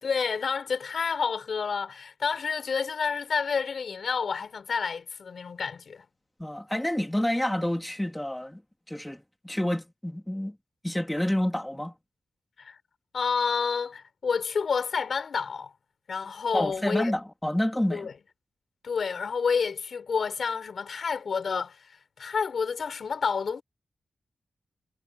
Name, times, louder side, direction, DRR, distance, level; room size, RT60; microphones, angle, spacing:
voice 1, 0.0-6.0 12.6-12.8 13.1-15.7 16.1-17.1 17.9-18.1 18.8-23.6, left 5 dB, 65° left, 4.4 m, -29 dB
voice 2, 6.4-8.6 8.9-10.6 10.8-11.9 16.5-18.1, left 1 dB, 5° left, 2.9 m, -28 dB
wide cardioid pair, 155°, 0 cm